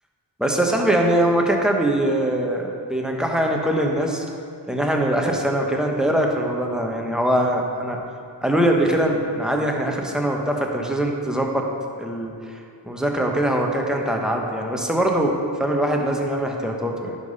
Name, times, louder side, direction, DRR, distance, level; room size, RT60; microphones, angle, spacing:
voice 1, 0.4-4.2 4.7-8.0 8.4-11.7 12.0-12.3 12.8-17.2, right 1 dB, ahead, 0 dB, 1.2 m, -22 dB
11.0 x 5.3 x 5.6 m, 2.4 s
wide cardioid pair, 70°, 45 cm